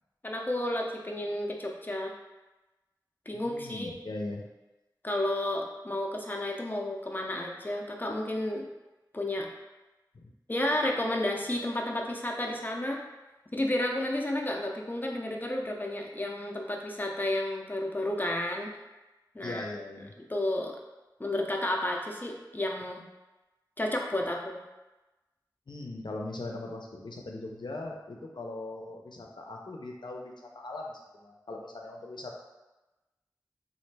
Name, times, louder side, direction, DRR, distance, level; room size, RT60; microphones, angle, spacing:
voice 1, 0.2-2.1 3.3-3.9 5.0-8.6 9.1-9.5 10.5-13.0 13.5-18.7 19.3-19.7 20.3-20.8 21.2-23.0 23.8-24.6, left 1 dB, 25° left, 0 dB, 0.5 m, -31 dB
voice 2, 3.3-4.4 10.2-10.3 19.4-20.1 25.7-32.3, left 2 dB, 85° left, 0 dB, 0.5 m, -40 dB
3.1 x 2.5 x 3.2 m, 1.1 s
wide cardioid pair, 55°, 8 cm